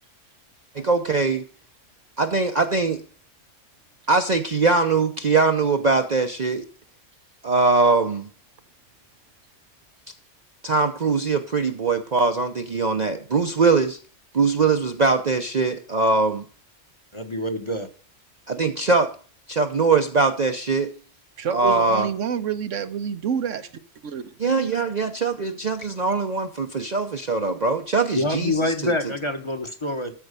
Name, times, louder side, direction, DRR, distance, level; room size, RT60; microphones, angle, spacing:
voice 1, 0.7-1.4 2.2-3.0 4.1-6.7 7.4-8.3 10.6-14.0 14.3-16.4 18.5-19.1 19.5-20.9 21.5-22.1 24.4-29.0, right 4 dB, 40° right, 0.8 m, -22 dB
voice 2, 17.1-17.9 28.2-30.1, left 1 dB, 25° left, 1.1 m, -26 dB
voice 3, 21.4-23.7 24.0-24.3, right 7 dB, 75° right, 1.2 m, -27 dB
13.5 x 4.6 x 6.7 m
omnidirectional pair, 1.3 m